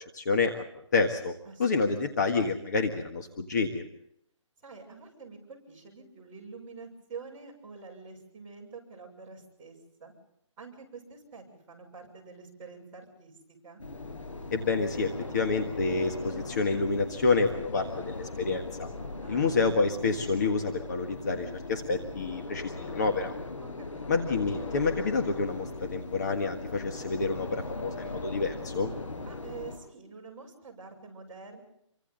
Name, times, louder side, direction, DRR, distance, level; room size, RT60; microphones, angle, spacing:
voice 1, 0.1-0.6 0.9-1.3 1.6-3.8 14.5-18.9 19.3-23.3 24.1-28.9, left 4 dB, 35° left, 4 dB, 1.6 m, -28 dB
voice 2, 1.4-2.0 4.6-10.1 10.6-13.8 19.2-19.6 23.6-24.2 29.2-31.6, right 4 dB, 15° right, -6 dB, 6.5 m, -47 dB
sound 1, 13.8-29.8, left 3 dB, 80° left, 6.9 m, -39 dB
28.5 x 24.5 x 4.0 m, 0.73 s
hypercardioid pair, 175°, 16 cm